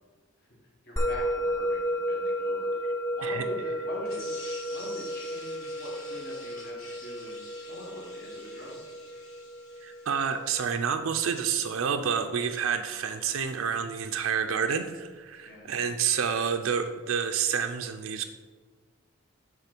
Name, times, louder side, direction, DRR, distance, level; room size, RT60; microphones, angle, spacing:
voice 1, 0.8-2.8 3.1-9.1 15.4-15.8, equal, 50° left, -3 dB, 1.5 m, -43 dB
Musical instrument, 1.0-11.6, equal, 15° left, 0.6 m, -33 dB
sound 1, 4.0-10.5, left 2 dB, 90° left, 2.0 m, -48 dB
voice 2, 9.8-18.2, right 7 dB, 85° right, 6 dB, 0.4 m, -29 dB
5.7 x 3.7 x 5.9 m, 1.4 s
head